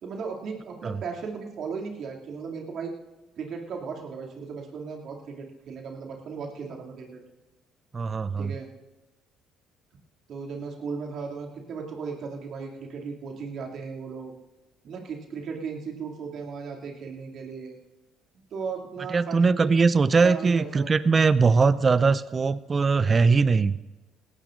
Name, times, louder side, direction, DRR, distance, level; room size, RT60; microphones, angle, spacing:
voice 1, 0.0-2.9 3.4-7.2 8.4-8.7 10.3-14.3 14.8-17.8 18.5-19.8 20.2-20.9, right 5 dB, 60° right, 0 dB, 2.5 m, -36 dB
voice 2, 7.9-8.5 19.1-23.8, right 4 dB, 35° right, 16 dB, 0.6 m, -21 dB
19.5 x 17.0 x 2.6 m, 1.1 s
hypercardioid pair, 55°, 0 cm